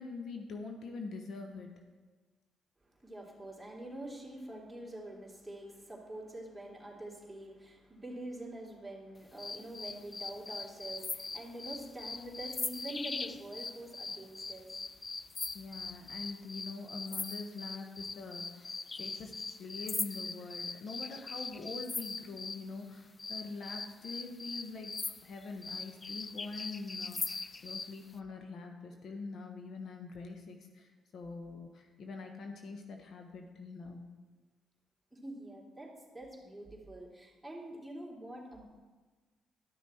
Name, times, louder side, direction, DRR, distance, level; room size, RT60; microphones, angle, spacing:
voice 1, 0.0-1.7 15.5-19.3 19.6-24.9 25.2-34.0, left 4 dB, 65° left, 4 dB, 1.0 m, -44 dB
voice 2, 3.0-14.9 35.1-38.6, right 1 dB, 5° right, -4 dB, 2.9 m, -45 dB
sound 1, 9.4-22.6 23.2-27.9, left 4 dB, 35° left, 0.4 m, -41 dB
12.0 x 6.2 x 4.4 m, 1.3 s
supercardioid pair, 60°, 0 cm